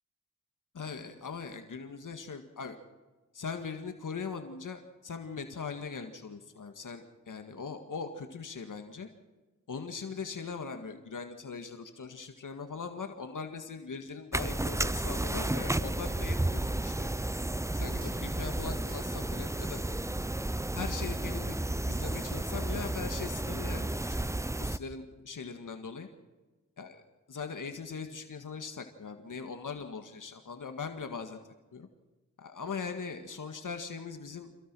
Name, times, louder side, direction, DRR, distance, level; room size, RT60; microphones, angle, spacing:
voice 1, 0.7-2.8 3.3-9.1 9.7-17.2 17.7-19.8 20.7-21.6 21.8-24.3 24.6-26.1 26.8-27.0 27.3-31.4 31.7-31.9 32.4-34.5, left 5 dB, 85° left, 6 dB, 1.9 m, -40 dB
sound 1, 14.3-24.8, right 1 dB, 10° right, 0.6 m, -32 dB
sound 2, 17.6-19.4 20.8-22.2 22.5-22.6, equal, 30° right, 5.3 m, -53 dB
27.5 x 16.5 x 6.2 m, 1.2 s
wide cardioid pair, 60°, 31 cm